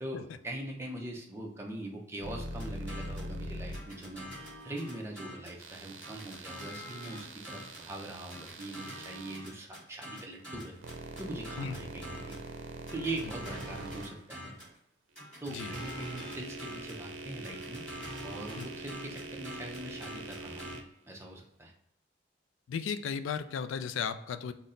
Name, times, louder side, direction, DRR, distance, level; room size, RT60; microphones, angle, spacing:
voice 1, 0.0-4.3 4.6-10.7 11.2-12.4 12.9-14.5 15.4-17.8 18.2-20.8 21.1-21.7, right 1 dB, 15° right, 0 dB, 0.6 m, -41 dB
sound 1, 2.2-4.6 5.6-9.4 10.4-14.7 15.3-20.8, right 2 dB, 90° right, 0.5 m, -44 dB
sound 2, 2.6-3.3 3.7-5.6 6.0-7.9 8.3-12.5 12.9-14.8 15.2-17.0 17.4-20.8, equal, 5° left, 1.4 m, -46 dB
voice 2, 22.7-24.5, left 6 dB, 85° left, 11 dB, 0.3 m, -35 dB
4.0 x 2.1 x 3.7 m, 0.78 s
head